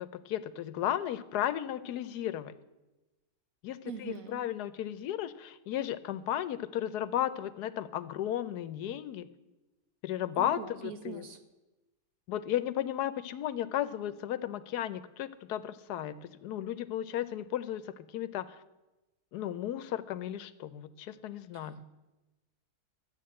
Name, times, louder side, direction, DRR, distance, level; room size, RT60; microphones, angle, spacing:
voice 1, 0.0-2.5 3.6-9.3 10.0-11.2 12.3-18.6 19.3-21.8, left 11 dB, 85° left, 15 dB, 1.2 m, -34 dB
voice 2, 3.8-4.4 10.4-11.4 21.5-21.9, right 7 dB, 60° right, 7 dB, 1.5 m, -43 dB
13.0 x 8.3 x 7.6 m, 1.1 s
omnidirectional pair, 1.7 m